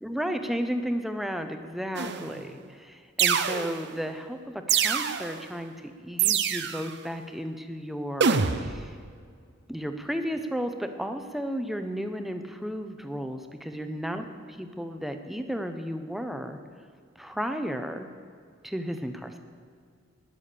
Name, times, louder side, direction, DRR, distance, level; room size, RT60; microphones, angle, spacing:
voice 1, 0.0-9.0 9.7-14.2 14.6-16.6 17.2-18.1 18.6-19.4, equal, ahead, 7 dB, 0.8 m, -33 dB
sound 1, 2.0-2.4 3.2-4.0 4.7-5.4 6.2-6.9 8.2-8.9, right 7 dB, 55° right, 0.7 m, -25 dB
19.5 x 7.1 x 6.7 m, 2.2 s
head